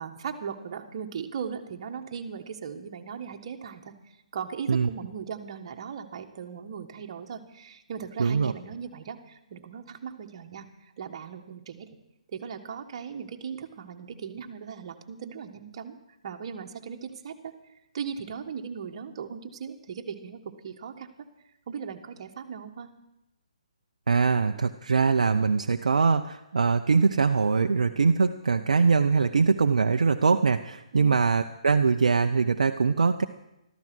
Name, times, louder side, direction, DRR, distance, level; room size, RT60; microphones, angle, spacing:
voice 1, 0.0-3.9 4.3-12.0 12.3-16.0 16.2-17.5 17.9-21.3 21.7-22.9 30.9-31.2, right 7 dB, 45° right, 5 dB, 1.6 m, -38 dB
voice 2, 8.2-8.5 24.1-33.2, right 5 dB, 75° right, 7 dB, 0.7 m, -22 dB
14.0 x 13.5 x 6.2 m, 0.88 s
figure-of-eight pair, 140°, 4 cm